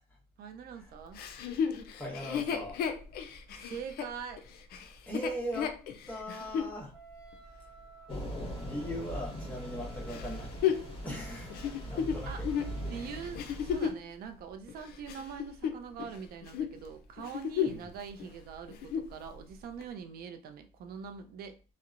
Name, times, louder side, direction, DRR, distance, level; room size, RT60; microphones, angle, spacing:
voice 1, 0.4-1.2 3.6-4.4 12.3-12.4 12.8-21.6, right 6 dB, 65° right, 7 dB, 0.5 m, -43 dB
Chuckle chortle, 1.2-6.7 7.3-7.4 10.1-14.1 14.7-16.2 16.4-16.7 17.2-17.9 18.2-18.3 18.7-19.2 19.8-19.9, left 8 dB, 65° left, 0.4 m, -33 dB
voice 2, 1.9-2.8 5.1-5.8 6.1-6.9 8.6-10.5 11.0-12.5 17.6-17.8, equal, 10° left, -3 dB, 1.1 m, -39 dB
Wind instrument woodwind instrument, 6.9-13.5, right 6 dB, 20° right, 1.0 m, -56 dB
Thunder / Rain, 8.1-13.9, equal, 30° left, 1.1 m, -40 dB
2.8 x 2.1 x 2.4 m, 0.35 s
cardioid pair, 110°, 17 cm